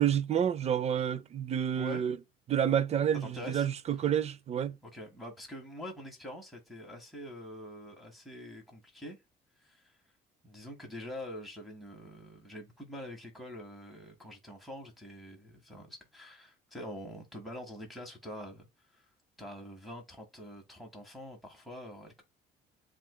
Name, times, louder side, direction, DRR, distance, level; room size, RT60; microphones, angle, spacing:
voice 1, 0.0-2.2 2.5-4.7, right 9 dB, 40° right, 0.5 m, -29 dB
voice 2, 3.1-3.7 4.0-4.1 4.8-9.2 9.6-10.0 10.4-18.7 18.9-19.1 19.4-22.2, left 1 dB, ahead, 1.6 m, -45 dB
7.4 x 2.5 x 2.2 m
cardioid pair, 110°, 17 cm